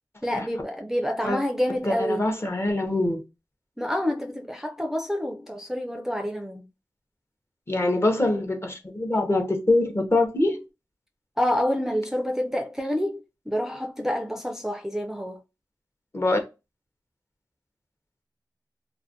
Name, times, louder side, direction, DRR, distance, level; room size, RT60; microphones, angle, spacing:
voice 1, 0.2-2.3 3.8-6.6 11.4-15.4, equal, 5° right, 0.4 m, -28 dB
voice 2, 1.8-3.2 7.7-10.6 16.1-16.4, left 2 dB, 35° left, 0.7 m, -24 dB
2.4 x 2.1 x 2.6 m
wide cardioid pair, 55°, 7 cm